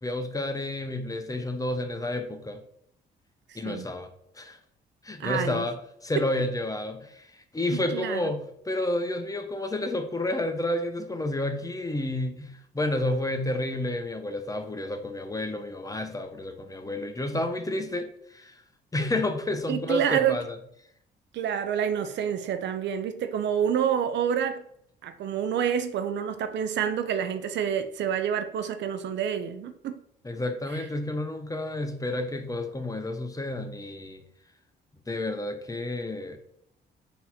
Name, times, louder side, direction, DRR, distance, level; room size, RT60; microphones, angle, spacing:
voice 1, 0.0-2.6 3.5-4.1 4.3-4.6 5.0-5.8 6.0-18.6 18.9-20.6 30.2-34.2 35.1-36.4, left 1 dB, 15° left, 0.7 m, -30 dB
voice 2, 5.2-5.6 7.7-8.2 19.7-20.4 21.3-24.6 25.0-30.0, right 8 dB, 65° right, 0.5 m, -28 dB
4.0 x 2.9 x 4.0 m
supercardioid pair, 65°, 20 cm